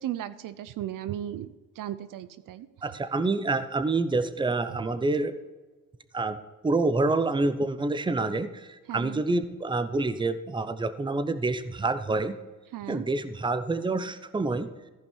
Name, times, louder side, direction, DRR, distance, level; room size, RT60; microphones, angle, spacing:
voice 1, 0.0-1.5 1.8-2.7 8.9-9.2 12.7-13.0, right 12 dB, 70° right, 14 dB, 0.6 m, -35 dB
voice 2, 2.8-5.3 6.1-6.4 6.6-12.3 12.9-14.7, right 3 dB, 15° right, 12 dB, 0.7 m, -27 dB
15.0 x 5.3 x 4.4 m, 1.2 s
cardioid pair, 85°, 34 cm